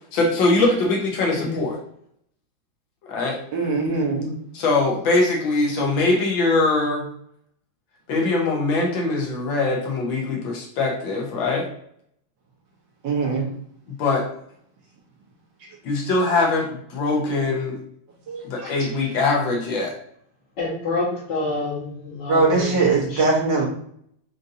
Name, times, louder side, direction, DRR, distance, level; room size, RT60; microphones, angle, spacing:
voice 1, 0.1-1.8 3.1-3.4 4.5-7.1 8.1-11.7 14.0-14.3 15.8-17.8 18.4-19.9, left 3 dB, 85° left, -1 dB, 1.6 m, -22 dB
voice 2, 3.5-4.4 13.0-13.5 18.3-18.7 22.3-23.7, right 3 dB, 75° right, -2 dB, 1.7 m, -21 dB
voice 3, 20.6-22.7, left 2 dB, 65° left, -11 dB, 2.1 m, -27 dB
5.1 x 2.6 x 2.7 m, 0.66 s
omnidirectional pair, 2.1 m